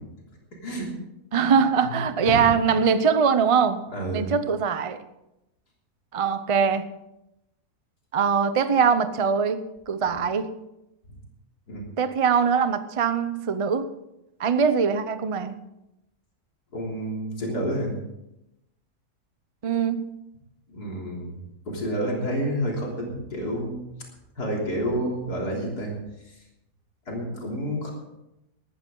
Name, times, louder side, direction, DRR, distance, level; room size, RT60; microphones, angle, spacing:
voice 1, 0.5-0.9 1.4-1.5 1.8-2.8 3.9-4.3 11.1-11.2 11.7-11.9 16.7-17.9 20.7-21.3 21.7-23.8 24.4-26.4 27.1-27.9, equal, 80° left, -2 dB, 3.9 m, -30 dB
voice 2, 1.3-3.8 4.1-5.0 6.1-6.9 8.1-10.5 12.0-13.9 14.4-15.6 19.6-20.0, right 6 dB, 35° right, 11 dB, 0.5 m, -22 dB
18.0 x 13.0 x 3.9 m, 0.89 s
omnidirectional pair, 1.7 m